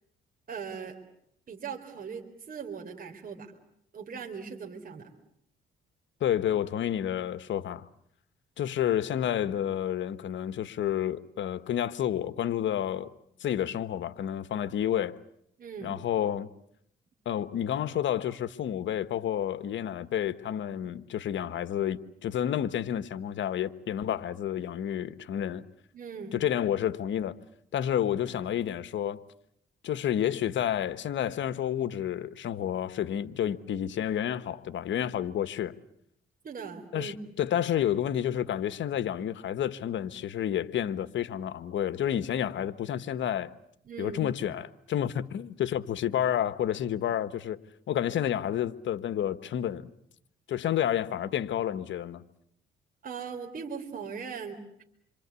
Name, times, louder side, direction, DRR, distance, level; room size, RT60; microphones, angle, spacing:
voice 1, 0.5-1.0 1.5-3.5 3.9-5.1 15.6-16.0 25.9-26.4 36.4-37.1 43.9-44.2 53.0-54.8, right 6 dB, 45° right, 4.0 m, -39 dB
voice 2, 6.2-7.9 8.6-13.1 13.4-15.2 15.8-16.5 17.2-25.6 26.3-27.4 27.7-29.2 29.8-35.8 36.9-43.5 44.0-47.6 47.9-49.9 50.5-52.2, left 10 dB, 70° left, 1.4 m, -30 dB
28.0 x 25.5 x 8.4 m
cardioid pair, 90°, 20 cm